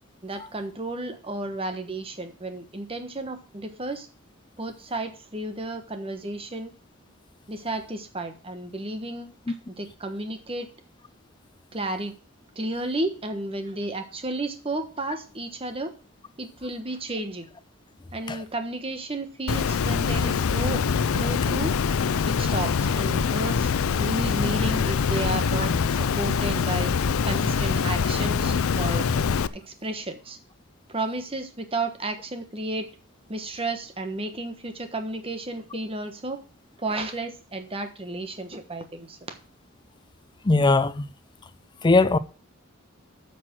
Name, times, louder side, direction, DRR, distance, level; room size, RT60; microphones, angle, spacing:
voice 1, 0.2-4.1 4.6-6.7 7.5-10.7 11.7-12.1 12.5-15.9 16.4-17.5 18.1-20.8 21.1-21.8 22.3-26.9 27.2-29.1 29.5-30.4 30.9-32.9 33.3-36.4 36.8-39.2, right 2 dB, 25° right, 1.2 m, -32 dB
Water, 19.5-29.5, left 6 dB, 85° left, 0.5 m, -24 dB
voice 2, 40.4-41.0 41.8-42.2, left 3 dB, 20° left, 0.4 m, -19 dB
9.2 x 6.0 x 5.9 m
head